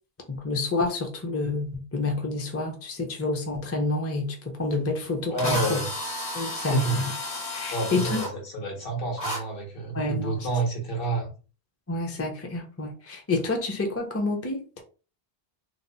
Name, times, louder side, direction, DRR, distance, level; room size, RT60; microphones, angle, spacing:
voice 1, 0.3-5.8 6.3-7.1 7.5-8.2 9.9-10.5 11.9-14.8, left 3 dB, 20° left, 0.4 m, -29 dB
Drill, 4.7-4.8 5.4-8.3 9.2-9.4, left 1 dB, 40° left, 1.0 m, -32 dB
voice 2, 5.3-5.9 6.6-7.0 7.7-11.3, right 3 dB, 60° left, 1.2 m, -29 dB
2.7 x 2.0 x 4.0 m
omnidirectional pair, 1.1 m